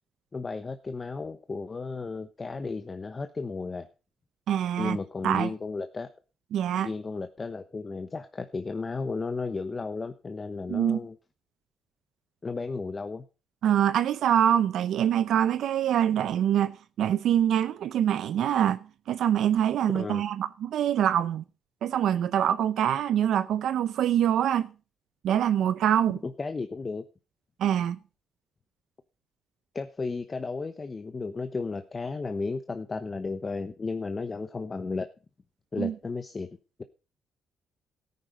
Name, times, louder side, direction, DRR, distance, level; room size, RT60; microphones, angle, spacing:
voice 1, 0.3-3.9 4.8-6.1 6.7-11.1 12.4-13.2 19.9-20.2 26.2-27.0 29.7-35.1 35.7-36.5, left 4 dB, 30° left, 1.0 m, -34 dB
voice 2, 4.5-5.0 5.2-5.5 6.5-6.9 10.7-11.0 13.6-21.4 21.8-24.7 25.2-26.2 27.6-28.0 35.8-35.9, right 10 dB, 75° right, 0.7 m, -25 dB
13.0 x 9.5 x 5.2 m
cardioid pair, 90°, 0 cm